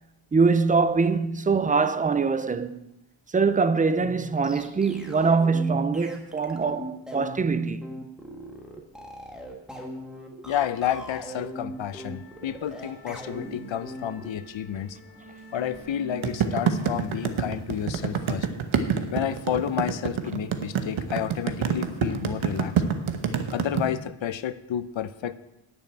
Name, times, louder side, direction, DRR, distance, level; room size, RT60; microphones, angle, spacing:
voice 1, 0.3-2.8 3.3-7.9, right 4 dB, 20° right, 0.4 m, -23 dB
sound 1, 4.0-14.3, right 1 dB, ahead, 1.5 m, -40 dB
voice 2, 10.5-15.0 15.5-18.5 19.1-22.7 23.5-25.4, left 10 dB, 65° left, 0.7 m, -30 dB
sound 2, 11.7-18.2, right 2 dB, 40° left, 3.3 m, -47 dB
sound 3, 16.2-23.8, right 8 dB, 70° right, 1.1 m, -26 dB
10.5 x 6.3 x 8.7 m
wide cardioid pair, 160°, 50 cm